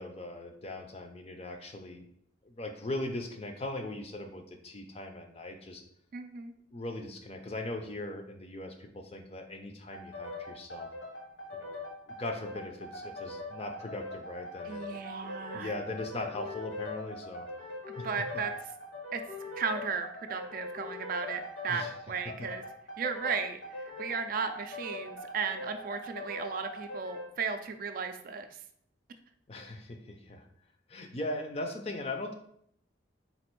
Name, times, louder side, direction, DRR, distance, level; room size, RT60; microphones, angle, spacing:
voice 1, 0.0-2.1 2.4-5.8 6.7-10.9 11.5-11.8 12.1-17.5 18.0-18.1 21.7-21.9 22.4-22.5 29.5-30.5 30.9-32.3, left 2 dB, 30° left, 4 dB, 0.5 m, -39 dB
voice 2, 6.1-6.5 14.7-15.7 18.0-18.5 19.1-19.2 19.6-22.6 23.0-28.5, right 5 dB, 45° right, 7 dB, 0.3 m, -35 dB
sound 1, 9.9-27.3, left 2 dB, 70° left, 1.0 m, -42 dB
4.1 x 2.5 x 4.5 m, 0.69 s
head